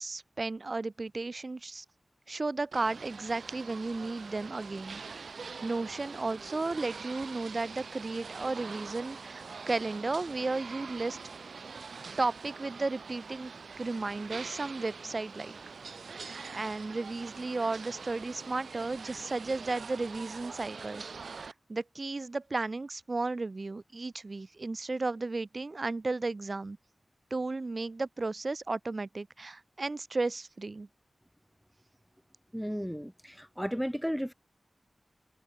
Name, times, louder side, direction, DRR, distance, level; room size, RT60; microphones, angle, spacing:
voice 1, 0.0-1.8 2.3-5.1 5.6-11.2 12.2-13.5 13.8-15.6 16.3-21.0 21.4-26.8 27.3-30.9, right 3 dB, 50° right, 3.0 m, -34 dB
sound 1, 2.7-21.5, right 5 dB, 85° right, 5.4 m, -44 dB
voice 2, 32.5-34.3, equal, ahead, 1.0 m, -34 dB
wide cardioid pair, 60°, 0 cm